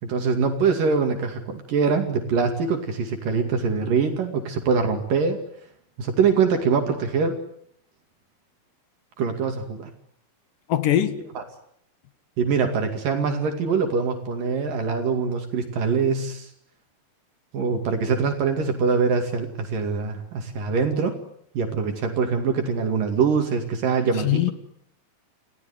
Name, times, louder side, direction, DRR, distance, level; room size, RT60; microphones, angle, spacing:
voice 1, 0.0-5.4 6.0-7.4 9.2-9.9 11.4-11.5 12.4-16.5 17.5-21.2 21.5-24.5, right 5 dB, 70° right, 4.0 m, -23 dB
voice 2, 10.7-11.2 24.2-24.5, left 12 dB, 70° left, 3.0 m, -21 dB
29.5 x 17.0 x 9.7 m
omnidirectional pair, 4.1 m